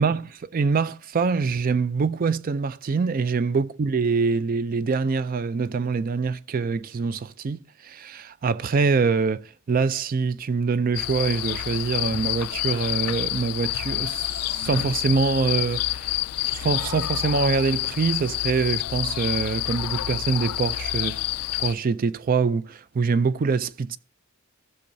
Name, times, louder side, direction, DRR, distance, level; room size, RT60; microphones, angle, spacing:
voice 1, 0.0-16.1 16.4-21.2 21.6-24.0, right 4 dB, 40° right, 0.3 m, -24 dB
sound 1, 10.9-21.7, left 14 dB, 85° left, 0.3 m, -28 dB
15.0 x 6.8 x 2.6 m
head